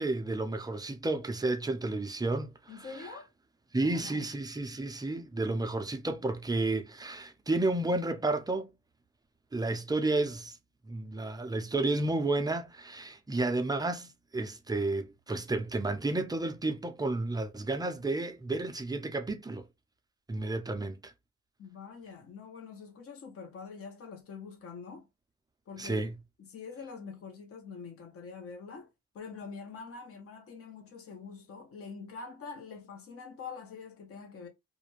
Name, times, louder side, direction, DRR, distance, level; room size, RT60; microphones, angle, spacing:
voice 1, 0.0-2.5 3.0-3.1 3.7-8.7 9.5-10.6 10.9-19.7 20.3-21.1 25.8-26.1, right 2 dB, 15° right, 0.5 m, -31 dB
voice 2, 2.7-3.3 3.8-4.3 21.6-25.1 25.7-26.1 26.4-28.9 29.1-34.5, left 5 dB, 50° left, 0.9 m, -45 dB
2.5 x 2.2 x 3.0 m
cardioid pair, 90°, 30 cm